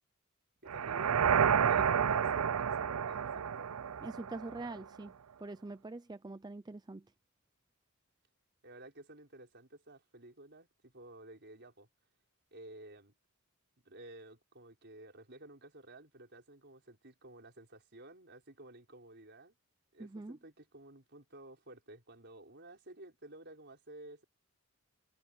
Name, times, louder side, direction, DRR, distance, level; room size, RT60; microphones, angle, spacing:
voice 1, 0.6-1.2 1.6-3.7 8.6-11.9 12.5-13.1 13.8-19.5 19.9-24.2, right 1 dB, 50° right, 5.4 m, -53 dB
sound 1, 0.7-4.8, right 7 dB, 85° right, 0.5 m, -30 dB
voice 2, 4.0-7.1 20.0-20.4, right 2 dB, 20° right, 0.4 m, -44 dB
head